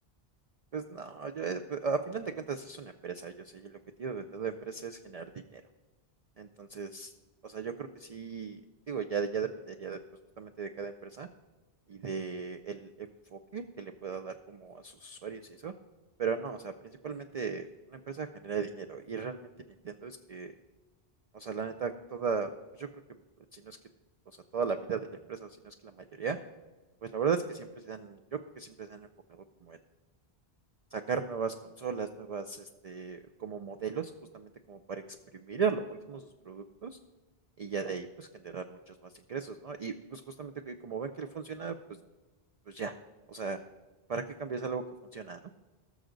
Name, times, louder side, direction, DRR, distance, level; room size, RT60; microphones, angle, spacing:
voice 1, 0.7-5.2 5.5-5.6 6.4-7.1 7.4-8.6 8.9-10.0 10.4-11.3 11.9-15.7 16.2-16.7 17.0-20.5 21.3-22.5 22.8-22.9 23.5-23.8 24.5-26.4 27.0-28.2 28.6-29.8 30.9-35.0 35.3-36.9 37.6-41.7 42.7-42.9 43.3-43.6 44.1-44.8 45.1-45.4, right 5 dB, 50° right, 8 dB, 0.5 m, -37 dB
19.0 x 6.4 x 3.9 m, 1.2 s
omnidirectional pair, 1.0 m